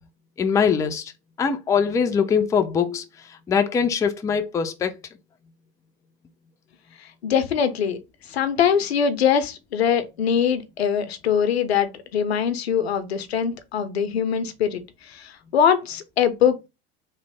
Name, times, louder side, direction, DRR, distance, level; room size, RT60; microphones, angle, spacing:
voice 1, 0.4-1.0 1.4-3.0 3.5-4.9, left 6 dB, 10° left, 0.3 m, -22 dB
voice 2, 7.2-8.0 8.3-16.7, left 8 dB, 90° left, 0.6 m, -22 dB
3.0 x 2.0 x 3.3 m
hypercardioid pair, 90°, 31 cm